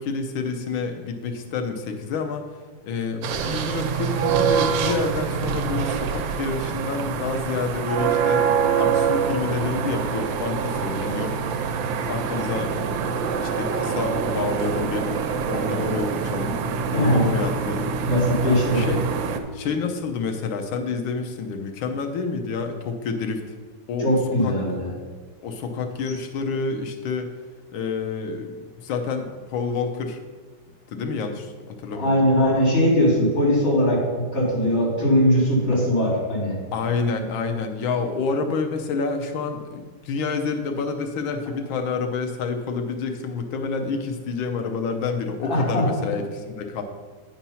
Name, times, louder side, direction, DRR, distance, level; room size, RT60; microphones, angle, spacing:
voice 1, 0.0-2.5 2.8-8.4 8.8-11.4 11.9-15.1 15.5-16.6 16.9-17.9 18.4-19.0 19.5-23.4 23.9-24.1 24.4-24.6 25.4-27.3 27.7-30.2 30.9-32.2 36.7-46.8, left 4 dB, 85° left, 5 dB, 1.6 m, -28 dB
sound 1, 3.2-19.4, right 6 dB, 85° right, 1.4 m, -25 dB
voice 2, 16.9-17.3 18.0-18.8 24.0-24.9 31.9-36.5 45.4-46.0, equal, 45° left, -5 dB, 3.4 m, -20 dB
9.1 x 4.4 x 5.5 m, 1.4 s
omnidirectional pair, 2.1 m